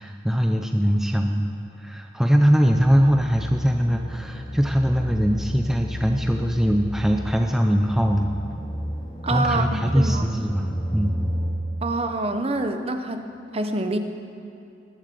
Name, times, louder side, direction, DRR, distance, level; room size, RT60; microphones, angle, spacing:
voice 1, 0.0-1.5 1.8-8.3 9.3-11.2, equal, ahead, 3 dB, 0.5 m, -21 dB
sound 1, 2.7-11.5, equal, 30° left, 2.6 m, -32 dB
voice 2, 9.2-10.3 11.8-13.2 13.5-14.0, right 2 dB, 35° right, 7 dB, 0.8 m, -26 dB
20.5 x 7.4 x 6.8 m, 2.7 s
head